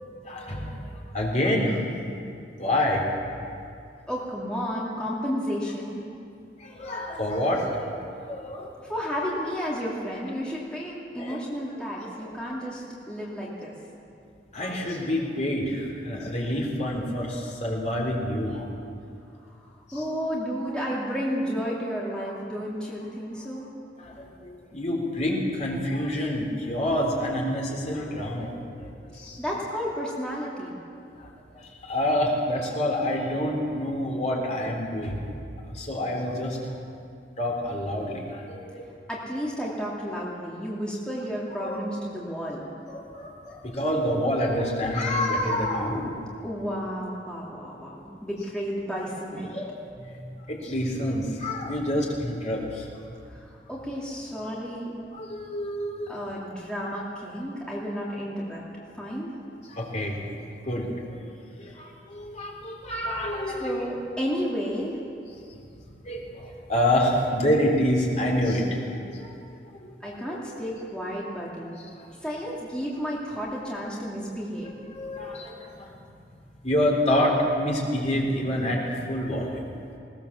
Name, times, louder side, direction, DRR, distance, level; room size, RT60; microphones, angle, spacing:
voice 1, 0.2-2.2 2.6-3.0 6.6-7.8 8.2-9.0 11.2-11.4 12.0-12.3 14.5-18.7 19.9-20.0 24.0-29.4 31.2-31.3 31.5-35.3 35.7-36.6 37.4-38.8 41.5-42.4 42.9-46.1 49.5-49.7 50.2-52.9 55.1-56.2 59.7-60.2 60.6-61.3 61.6-63.9 66.0-69.4 69.8-69.9 70.3-70.4 71.8-71.9 74.6-75.9 76.6-79.7, left 1 dB, 40° left, -1 dB, 3.8 m, -28 dB
voice 2, 4.1-6.0 8.9-13.7 19.6-23.7 29.4-30.7 39.1-42.6 46.4-49.5 53.3-55.0 56.1-58.6 59.0-59.3 63.6-65.0 70.0-71.8 72.2-74.7, equal, 5° left, -6 dB, 2.7 m, -32 dB
20.0 x 19.0 x 7.2 m, 2.5 s
head